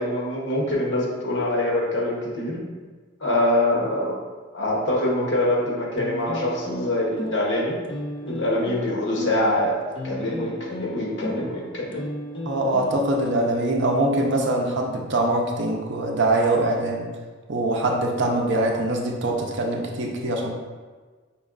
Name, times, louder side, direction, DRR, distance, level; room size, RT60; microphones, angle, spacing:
voice 1, 0.0-2.6 3.2-4.2 4.5-7.7 8.2-9.8 10.0-12.0, left 1 dB, 65° left, -3 dB, 1.0 m, -24 dB
sound 1, 6.0-14.1, left 1 dB, 25° left, 0.4 m, -35 dB
voice 2, 12.4-17.1 17.5-20.6, right 1 dB, 60° right, 1 dB, 0.6 m, -23 dB
5.2 x 3.0 x 2.4 m, 1.4 s
head